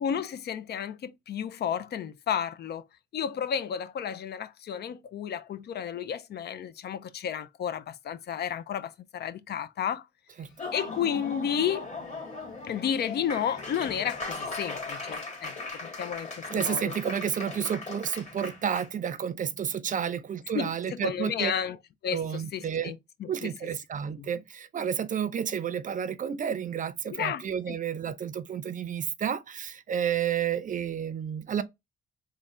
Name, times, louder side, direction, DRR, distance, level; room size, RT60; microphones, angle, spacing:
voice 1, 0.0-2.8 3.1-10.1 10.7-11.9 12.7-15.5 15.8-16.9 20.5-21.8 22.0-23.5 24.2-24.3 27.1-27.8, left 8 dB, 55° left, 0.5 m, -32 dB
Laughter / Applause, 10.5-18.9, left 3 dB, 35° left, 1.7 m, -38 dB
voice 2, 16.5-21.5 22.1-22.9 23.3-31.6, right 8 dB, 40° right, 0.5 m, -31 dB
3.6 x 2.2 x 4.2 m
cardioid pair, 90°, 20 cm